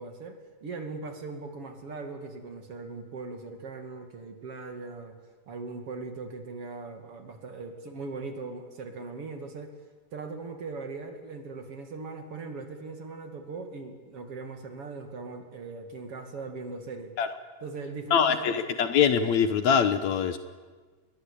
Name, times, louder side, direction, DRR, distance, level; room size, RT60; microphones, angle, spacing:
voice 1, 0.0-5.1 5.5-9.7 10.1-17.1 17.6-18.6, right 3 dB, 45° right, 6 dB, 3.1 m, -39 dB
voice 2, 18.1-20.4, left 7 dB, 65° left, 10 dB, 2.2 m, -23 dB
27.5 x 22.0 x 8.6 m, 1.4 s
omnidirectional pair, 3.8 m